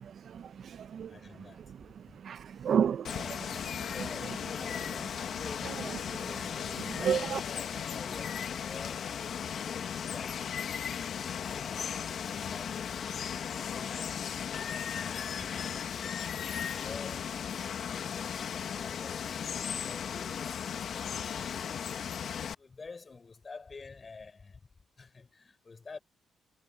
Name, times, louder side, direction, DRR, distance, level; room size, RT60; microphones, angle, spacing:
voice 1, 0.0-1.2 1.7-3.5 7.0-7.4, right 8 dB, 60° right, 0.8 m, -32 dB
voice 2, 1.0-1.6 2.1-2.2 2.6-2.7 3.9-9.1 9.4-11.0 11.4-16.4 16.8-22.1 22.4-24.6 25.0-26.0, left 4 dB, 30° left, 7.0 m, -49 dB
Water, 3.0-22.5, left 8 dB, 60° left, 1.6 m, -36 dB
cardioid pair, 90°, 0 cm